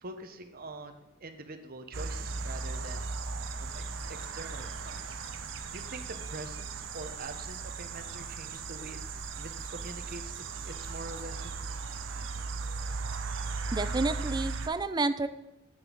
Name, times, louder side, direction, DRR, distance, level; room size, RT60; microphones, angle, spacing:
voice 1, 0.0-3.1 3.6-3.8 4.1-5.2 5.7-9.0 9.4-11.6, right 2 dB, 50° right, 7 dB, 1.0 m, -45 dB
sound 1, 1.9-14.7, right 4 dB, 75° right, 0.8 m, -37 dB
voice 2, 13.7-15.3, right 3 dB, 20° right, 12 dB, 0.5 m, -30 dB
9.2 x 8.0 x 4.0 m, 0.93 s
head